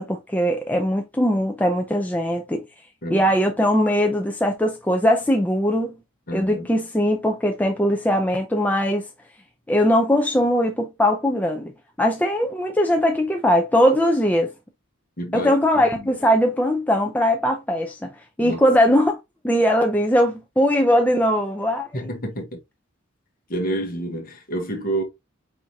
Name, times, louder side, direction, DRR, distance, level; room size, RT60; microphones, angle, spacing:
voice 1, 0.0-2.6 3.1-5.9 6.3-9.1 9.7-11.7 12.0-14.5 15.3-18.1 18.4-19.2 19.4-21.9, equal, 10° left, 0.5 m, -20 dB
voice 2, 6.3-6.7 15.2-16.1 18.4-18.6 21.9-22.5 23.5-25.0, right 1 dB, 45° left, 1.2 m, -29 dB
4.6 x 3.5 x 2.7 m
head